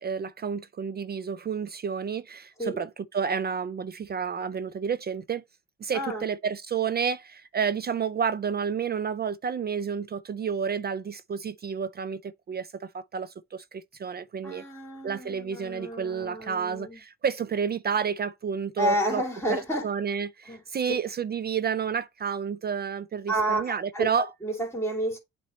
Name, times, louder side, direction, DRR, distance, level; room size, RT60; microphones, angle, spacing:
voice 1, 0.0-5.4 5.8-14.6 15.0-19.2 19.5-24.3, right 6 dB, 35° right, 0.4 m, -30 dB
voice 2, 14.4-17.0 18.8-19.9 20.5-20.6 20.9-21.0 23.3-24.1 24.4-25.2, right 1 dB, 10° left, 2.7 m, -30 dB
8.1 x 3.0 x 4.1 m
cardioid pair, 90°, 30 cm